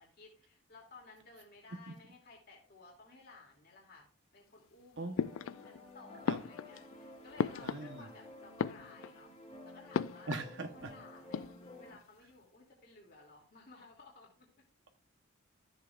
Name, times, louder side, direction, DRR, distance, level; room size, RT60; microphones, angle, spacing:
voice 1, 0.0-4.1 4.3-5.1 5.4-9.3 9.7-10.3 10.7-11.5 11.8-14.5, left 3 dB, 50° left, -2 dB, 2.5 m, -57 dB
sound 1, 5.2-5.9 6.2-8.2 8.5-9.3 9.9-10.5 10.8-10.9 11.2-11.9, left 6 dB, 80° left, 0.3 m, -37 dB
sound 2, 5.2-12.0, left 1 dB, 30° left, 2.7 m, -53 dB
voice 2, 7.6-8.1 10.3-10.9, right 3 dB, 60° right, 5 dB, 1.0 m, -41 dB
13.5 x 7.3 x 2.4 m, 0.41 s
head